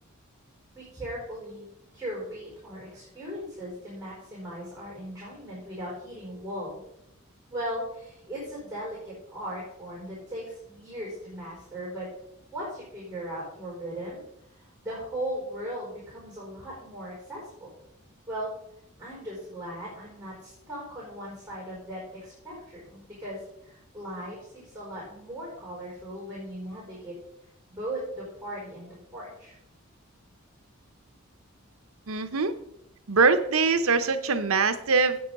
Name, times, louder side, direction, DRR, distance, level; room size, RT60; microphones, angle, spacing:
voice 1, 0.7-1.6 1.9-6.7 7.5-12.1 12.5-14.2 14.5-17.7 18.3-18.5 19.0-27.1 27.7-29.5, equal, 10° right, -7 dB, 4.7 m, -38 dB
voice 2, 32.1-32.5 33.1-35.2, right 4 dB, 85° right, 10 dB, 0.9 m, -23 dB
8.7 x 8.6 x 5.4 m, 0.80 s
head